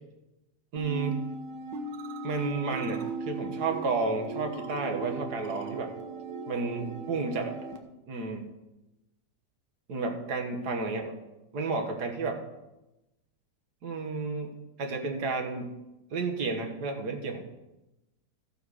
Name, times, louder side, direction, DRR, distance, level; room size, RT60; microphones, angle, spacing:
voice 1, 0.7-1.2 2.2-5.9 6.5-7.6 8.1-8.5 9.9-11.2 11.5-12.4 13.8-15.7 16.1-17.4, right 4 dB, 70° right, 3 dB, 1.8 m, -32 dB
sound 1, 0.8-7.8, right 3 dB, 90° right, 1.7 m, -37 dB
13.5 x 6.9 x 4.8 m, 0.97 s
omnidirectional pair, 1.8 m